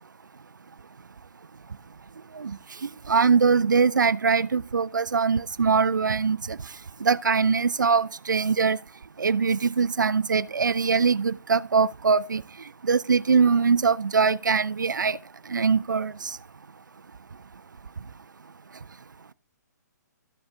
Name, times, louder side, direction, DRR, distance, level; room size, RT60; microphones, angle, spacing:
voice 1, 3.1-6.6 7.0-8.8 9.2-12.4 12.8-15.2 15.5-16.4, right 5 dB, 85° right, 0.4 m, -22 dB
12.5 x 7.1 x 3.6 m
figure-of-eight pair, 135°, 10 cm